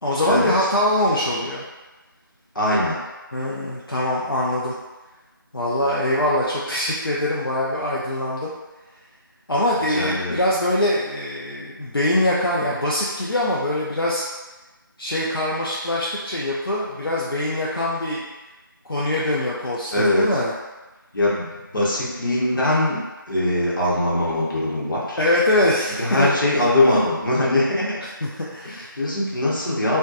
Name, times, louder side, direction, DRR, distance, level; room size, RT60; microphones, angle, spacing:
voice 1, 0.0-1.6 3.3-4.7 5.5-8.5 9.5-14.2 15.0-18.2 18.9-20.5 25.2-26.3 28.2-28.9, left 1 dB, 85° left, -5 dB, 0.4 m, -23 dB
voice 2, 2.5-3.0 9.9-10.4 19.9-20.2 21.1-25.2 26.0-28.0 28.6-30.0, left 1 dB, 65° left, -6 dB, 0.9 m, -22 dB
2.6 x 2.2 x 2.4 m, 1.1 s
figure-of-eight pair, 165°, 12 cm